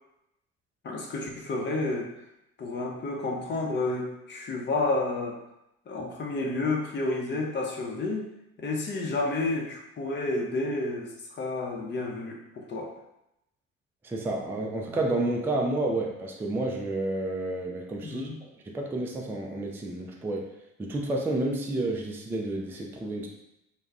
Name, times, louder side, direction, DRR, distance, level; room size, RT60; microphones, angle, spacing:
voice 1, 0.8-2.1 2.6-5.4 5.9-8.3 8.6-12.9 18.0-18.4, left 2 dB, 30° left, 0 dB, 0.7 m, -30 dB
voice 2, 14.0-20.5 20.8-23.3, right 2 dB, 5° right, 0 dB, 0.3 m, -30 dB
2.2 x 2.1 x 3.5 m, 0.85 s
hypercardioid pair, 60°, 39 cm